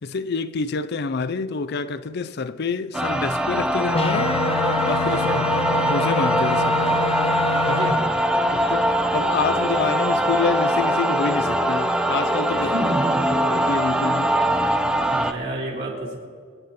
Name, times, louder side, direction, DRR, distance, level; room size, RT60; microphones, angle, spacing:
voice 1, 0.0-4.4 4.8-5.3 5.6-7.0 8.4-12.9 13.5-14.4, left 5 dB, 55° left, 0.5 m, -27 dB
sound 1, 2.9-15.3, right 1 dB, 5° right, 0.7 m, -22 dB
sound 2, 3.9-7.9, left 4 dB, 30° left, 0.8 m, -26 dB
voice 2, 7.7-8.1 12.6-13.4 15.1-16.2, right 1 dB, 60° right, 3.6 m, -29 dB
Telephone, 9.9-12.9 13.2-13.9 14.2-14.5, left 4 dB, 85° left, 2.6 m, -37 dB
25.0 x 9.9 x 4.2 m
head